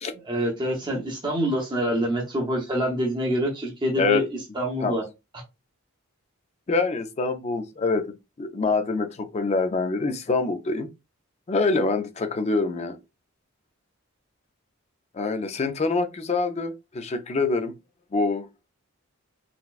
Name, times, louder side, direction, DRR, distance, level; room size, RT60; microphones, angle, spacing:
voice 1, 0.3-4.3 4.5-5.0, equal, 20° right, 0.7 m, -26 dB
voice 2, 6.7-10.9 11.5-13.0 15.1-17.7 18.1-18.5, left 3 dB, 30° left, 0.4 m, -25 dB
3.9 x 2.1 x 2.4 m
head